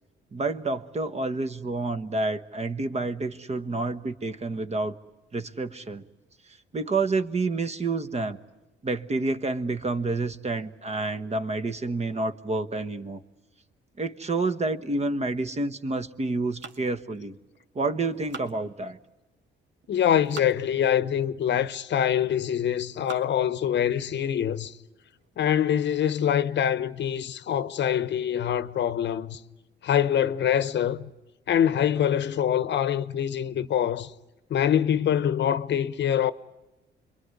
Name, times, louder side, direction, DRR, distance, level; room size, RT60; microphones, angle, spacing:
voice 1, 0.3-4.9 5.3-6.0 6.5-8.4 8.8-13.2 14.0-17.4 17.7-19.0, right 3 dB, 35° right, 1.3 m, -29 dB
sound 1, 16.4-17.7 18.0-19.2 19.8-20.6 21.2-21.3 22.1-22.4 22.8-23.5 24.0-24.1 24.5-24.6 25.0-25.3, right 5 dB, 65° right, 2.1 m, -45 dB
voice 2, 19.9-24.7 25.4-29.4 29.8-31.1 31.5-34.1 34.5-36.3, left 9 dB, 65° left, 0.9 m, -24 dB
27.0 x 22.5 x 9.7 m
cardioid pair, 90°, 20 cm